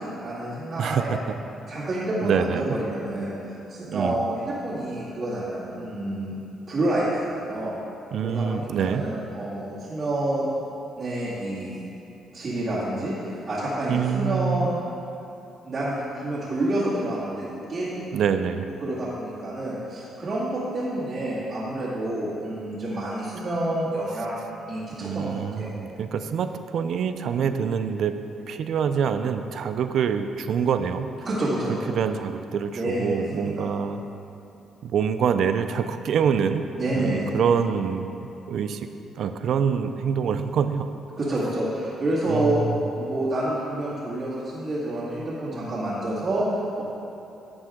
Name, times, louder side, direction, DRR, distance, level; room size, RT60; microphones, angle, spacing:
voice 1, 0.0-1.1 1.7-3.3 3.7-6.3 6.7-7.7 8.2-10.5 11.0-11.8 12.3-14.8 15.6-18.0 18.8-25.7 31.2-31.7 32.7-33.7 36.8-37.4 41.2-42.6 42.9-46.8, right 1 dB, 45° right, -10 dB, 2.2 m, -28 dB
voice 2, 0.8-1.4 2.2-2.8 3.9-4.2 8.1-9.0 13.9-14.6 18.1-18.7 25.0-28.1 28.5-31.1 31.7-34.0 34.8-36.7 36.9-38.1 38.5-38.9 39.2-40.9 42.3-42.8, right 7 dB, 70° right, 9 dB, 0.5 m, -25 dB
11.0 x 7.5 x 3.7 m, 2.8 s
cardioid pair, 90°, 0 cm